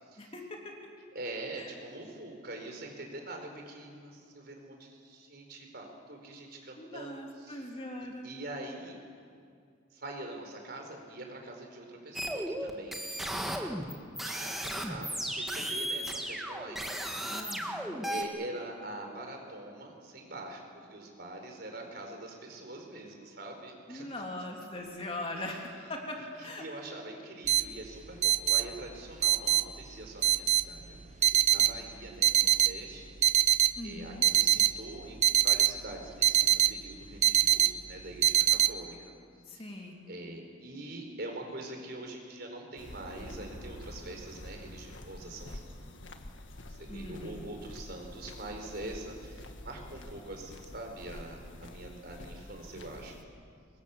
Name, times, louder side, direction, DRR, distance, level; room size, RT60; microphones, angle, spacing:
voice 1, 0.2-0.7 1.6-1.7 6.8-8.3 17.3-18.0 23.9-26.6 33.8-34.2 39.5-40.0 46.9-47.5, left 1 dB, 30° left, 1 dB, 2.9 m, -41 dB
voice 2, 1.1-7.7 8.2-9.0 9.9-13.7 14.2-17.3 18.0-20.6 20.9-24.2 25.3-25.6 26.2-33.1 33.8-39.1 40.1-46.2 46.7-53.2, right 2 dB, 50° right, 2 dB, 4.7 m, -44 dB
sound 1, 12.1-18.2, equal, ahead, 1.7 m, -35 dB
sound 2, 27.5-38.7, right 12 dB, 35° right, 0.6 m, -25 dB
sound 3, 42.8-53.2, left 1 dB, 70° left, 1.7 m, -47 dB
25.5 x 23.0 x 7.2 m, 2.3 s
head